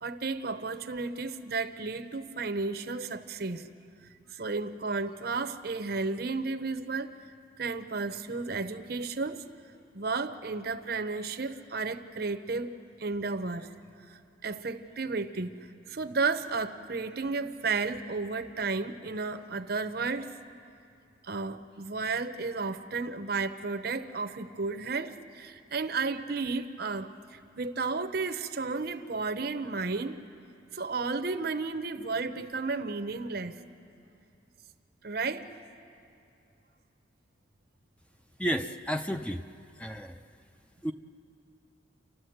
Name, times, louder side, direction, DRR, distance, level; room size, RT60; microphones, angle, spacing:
voice 1, 0.0-3.7 4.3-7.1 7.6-9.4 9.9-12.7 13.0-13.7 14.1-15.5 15.9-20.4 21.2-30.2 30.7-33.6 35.0-35.5, right 4 dB, 55° right, 10 dB, 0.8 m, -33 dB
voice 2, 38.4-39.4 39.8-40.2 40.8-40.9, equal, 5° left, 6 dB, 0.5 m, -32 dB
29.5 x 11.5 x 7.9 m, 2.6 s
head